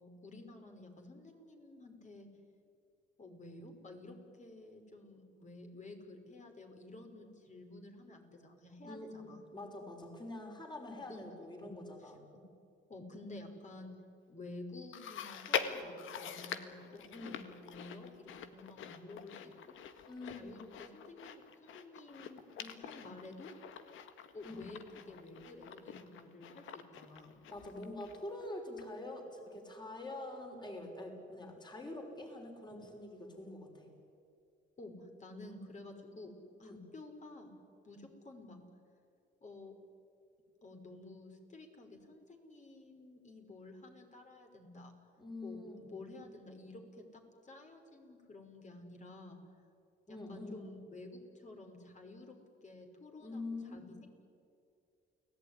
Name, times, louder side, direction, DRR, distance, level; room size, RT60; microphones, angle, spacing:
voice 1, 0.0-2.3 3.2-9.4 11.1-11.3 11.6-11.7 12.0-12.1 12.9-13.9 14.3-19.5 20.3-23.5 24.3-27.4 34.8-36.3 36.6-37.5 37.8-38.6 39.4-39.7 40.6-44.9 45.4-49.4 50.1-52.4 52.6-54.1, left 2 dB, 35° left, 3 dB, 5.5 m, -51 dB
voice 2, 8.8-12.2 17.1-17.4 20.1-20.6 24.4-24.7 27.5-33.9 36.6-36.8 45.2-45.8 50.1-50.6 53.2-54.0, left 2 dB, 20° left, 2 dB, 5.9 m, -45 dB
Chewing mastication, 14.9-28.5 28.8-28.9 29.7-29.8, left 8 dB, 85° left, 1.8 m, -44 dB
29.5 x 18.5 x 10.0 m, 2.5 s
cardioid pair, 90°, 20 cm